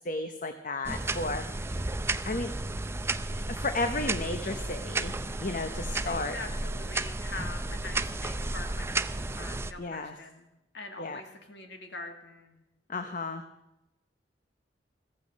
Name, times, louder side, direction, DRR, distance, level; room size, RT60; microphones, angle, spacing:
voice 1, 0.0-1.8 2.2-2.5 3.5-6.4 9.8-10.1 11.0-11.2 12.9-13.4, left 2 dB, 45° left, 7 dB, 0.9 m, -33 dB
sound 1, 0.8-9.7, right 2 dB, 15° right, 0.5 m, -33 dB
voice 2, 5.9-10.5 10.7-12.6, left 2 dB, 70° left, 4 dB, 2.2 m, -43 dB
15.0 x 15.0 x 5.3 m, 0.93 s
head